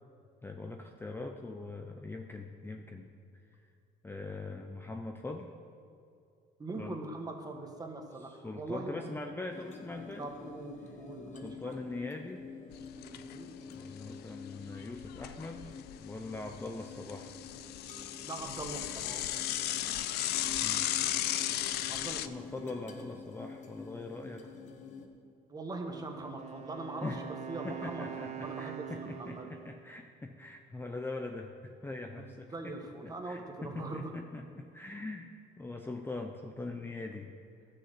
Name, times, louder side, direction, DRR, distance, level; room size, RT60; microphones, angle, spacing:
voice 1, 0.4-3.1 3.6-3.7 4.0-5.5 6.8-7.0 8.3-10.3 11.4-12.4 13.7-15.7 16.0-17.3 17.8-17.9 20.6-20.8 22.3-24.5 27.0-27.2 27.6-32.8 33.0-35.3 35.6-37.3, left 2 dB, 15° left, 3 dB, 0.7 m, -42 dB
voice 2, 6.6-9.1 10.2-11.8 12.9-13.5 18.2-19.3 21.9-22.5 25.5-29.5 32.1-32.2 32.5-34.1, right 2 dB, 20° right, 3 dB, 1.5 m, -42 dB
sound 1, 9.5-25.1, left 5 dB, 45° left, 1.3 m, -48 dB
Bicycle / Mechanisms, 12.7-13.4 13.7-13.8 14.0-14.1 14.8-16.0 16.3-22.3, left 13 dB, 75° left, 0.5 m, -35 dB
Wind instrument woodwind instrument, 25.9-29.7, right 8 dB, 40° right, 1.1 m, -44 dB
11.5 x 6.6 x 7.8 m, 2.4 s
cardioid pair, 110°, 17 cm